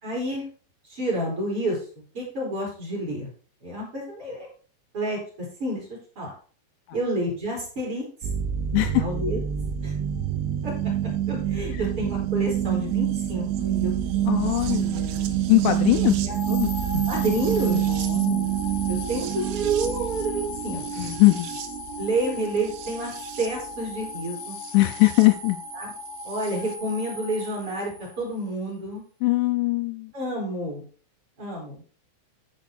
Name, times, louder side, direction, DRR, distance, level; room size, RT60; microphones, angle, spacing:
voice 1, 0.0-0.4 0.9-1.8 2.1-3.3 3.6-4.5 4.9-5.2 5.6-5.8 6.2-6.3 6.9-8.0 8.8-9.4 9.8-9.9 10.6-10.7 11.3-14.1 14.4-14.6 16.2-16.3 16.9-18.0 18.9-21.1 22.0-23.1 23.4-24.6 25.7-25.9 26.2-27.9 28.2-29.0 30.1-30.8 31.4-31.8, right 1 dB, 30° right, -2 dB, 4.1 m, -29 dB
sound 1, 8.2-25.3 26.4-26.5, right 11 dB, 85° right, 3.4 m, -27 dB
voice 2, 8.7-9.1 11.8-11.9 14.3-16.2 16.5-16.7 17.9-18.6 21.0-21.5 24.7-25.6 29.2-30.1, left 20 dB, 80° left, 7 dB, 2.9 m, -21 dB
sound 2, 16.3-28.5, left 3 dB, 55° left, 2.0 m, -38 dB
12.5 x 5.2 x 4.5 m, 0.40 s
omnidirectional pair, 5.7 m